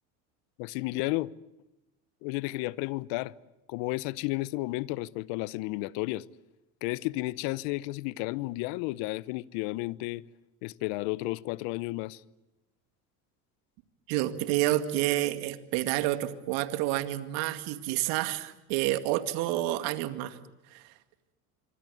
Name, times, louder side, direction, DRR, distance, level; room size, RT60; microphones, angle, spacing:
voice 1, 0.6-1.3 2.2-3.3 3.7-6.3 6.8-10.2 10.6-12.2, left 20 dB, 70° left, 1.0 m, -32 dB
voice 2, 14.1-20.4 20.7-20.8, right 15 dB, 70° right, 2.3 m, -29 dB
25.5 x 25.0 x 9.3 m
supercardioid pair, 90°, 44 cm